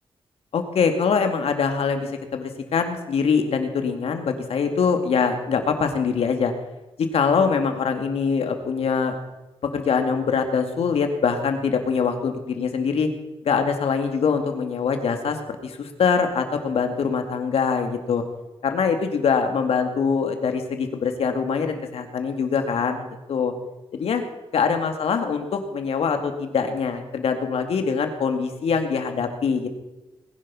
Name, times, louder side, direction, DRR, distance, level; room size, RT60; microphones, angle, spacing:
voice 1, 0.5-6.5 7.1-9.2 9.7-13.1 13.4-18.2 18.6-23.5 23.9-24.2 24.5-29.7, left 6 dB, 80° left, 6 dB, 2.3 m, -23 dB
20.5 x 11.0 x 5.7 m, 1.0 s
cardioid pair, 95°, 10 cm